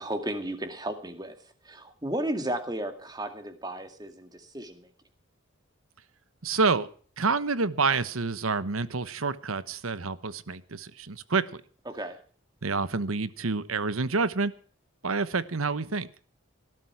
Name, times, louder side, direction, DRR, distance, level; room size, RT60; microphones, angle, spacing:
voice 1, 0.0-1.4 1.6-4.9 11.9-12.2, right 1 dB, 20° right, 7 dB, 2.2 m, -34 dB
voice 2, 6.4-6.9 7.2-11.6 12.6-14.5 15.0-16.1, right 4 dB, 85° right, 15 dB, 1.1 m, -28 dB
19.0 x 12.5 x 4.7 m, 0.43 s
head